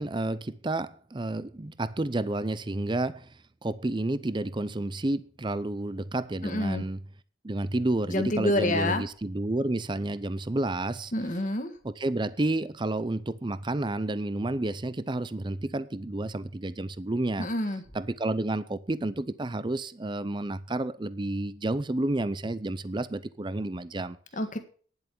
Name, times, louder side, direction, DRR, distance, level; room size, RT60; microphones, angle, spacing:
voice 1, 0.0-3.3 3.6-7.0 7.4-11.1 11.8-17.5 17.9-24.2, right 2 dB, 25° right, 0.6 m, -30 dB
voice 2, 6.4-6.8 8.1-9.0 11.1-11.7 17.4-17.8 24.4-24.6, left 1 dB, 40° left, 1.6 m, -27 dB
10.0 x 8.0 x 7.0 m
head